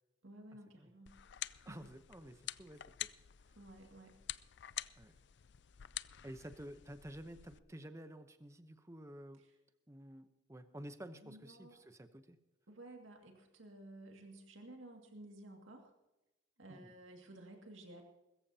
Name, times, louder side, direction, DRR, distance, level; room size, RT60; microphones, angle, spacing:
voice 1, 0.2-1.2 1.7-1.8 3.6-4.1 9.4-9.5 11.2-11.8 12.7-15.9 16.6-18.0, right 1 dB, 90° right, 2 dB, 2.2 m, -54 dB
sound 1, 1.0-7.6, left 13 dB, 60° left, 0.5 m, -48 dB
voice 2, 1.6-3.1 5.0-5.2 6.2-9.4 9.9-12.4 16.7-16.9, right 1 dB, 15° right, 9 dB, 0.8 m, -51 dB
21.5 x 14.5 x 2.8 m, 1.0 s
head